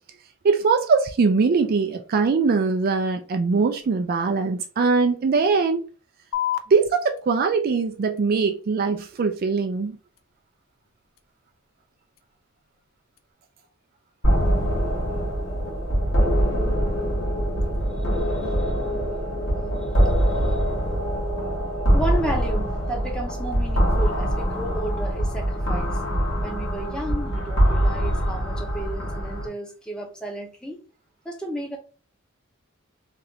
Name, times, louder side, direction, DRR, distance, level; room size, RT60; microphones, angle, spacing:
voice 1, 0.4-5.8 6.7-10.0, right 4 dB, 45° right, 0.3 m, -21 dB
sound 1, 6.3-13.3, left 12 dB, 80° left, 0.4 m, -37 dB
sound 2, 14.2-29.5, equal, 60° left, 1.4 m, -23 dB
voice 2, 18.1-18.7 20.0-20.6 21.9-26.0 26.4-30.8 31.2-31.8, right 1 dB, 5° left, 0.7 m, -33 dB
3.1 x 2.5 x 2.8 m
head